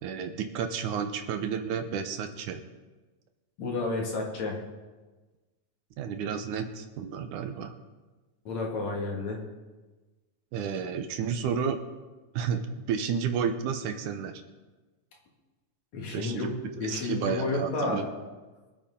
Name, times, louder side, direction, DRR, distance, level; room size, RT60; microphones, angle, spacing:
voice 1, 0.0-2.6 6.0-7.7 10.5-11.8 12.3-14.4 16.1-18.0, right 7 dB, 75° right, 7 dB, 2.4 m, -31 dB
voice 2, 3.6-4.6 8.4-9.4 15.9-16.5 16.8-18.1, left 3 dB, 60° left, -1 dB, 3.3 m, -31 dB
24.0 x 8.8 x 3.8 m, 1.2 s
omnidirectional pair, 3.6 m